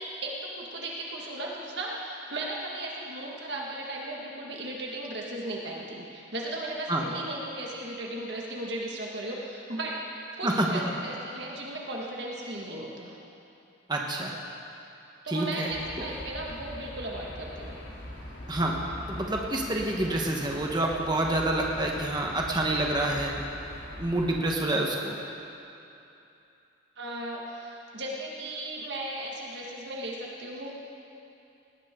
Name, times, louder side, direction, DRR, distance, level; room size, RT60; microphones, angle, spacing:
voice 1, 0.0-10.0 10.4-13.2 15.2-17.8 27.0-30.8, right 1 dB, 60° right, -3 dB, 1.9 m, -36 dB
voice 2, 13.9-14.3 15.3-15.7 18.5-18.8 19.1-23.4 24.0-25.2, right 1 dB, 20° right, -1 dB, 1.3 m, -27 dB
sound 1, 15.7-24.4, equal, 70° left, 3.2 m, -42 dB
19.5 x 17.0 x 3.8 m, 2.8 s
head